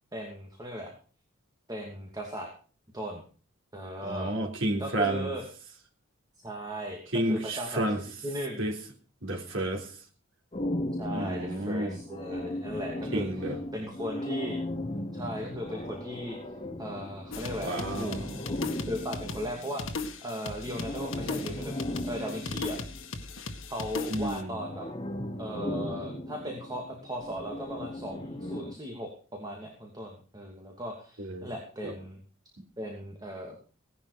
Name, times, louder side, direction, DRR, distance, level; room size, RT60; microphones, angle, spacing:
voice 1, 0.1-0.9 1.7-2.5 2.9-3.2 3.7-4.3 4.8-5.4 6.4-8.7 11.0-13.2 13.7-14.6 15.1-16.4 16.8-18.2 18.9-22.8 23.7-24.9 25.4-32.2 32.8-33.5, equal, 20° right, 0 dB, 2.7 m, -37 dB
voice 2, 4.0-5.3 7.1-8.0 8.6-8.7 9.2-9.9 11.1-12.0 13.1-13.6 17.6-18.4 24.1-24.6 31.2-31.5 31.8-31.9 32.6-32.7, right 1 dB, 65° right, 2 dB, 3.7 m, -31 dB
sound 1, 10.5-20.1 20.6-23.2 24.5-28.7, left 1 dB, 25° left, 1.5 m, -37 dB
sound 2, 17.3-24.4, left 3 dB, 70° left, 1.9 m, -38 dB
18.0 x 11.0 x 5.1 m, 0.40 s
head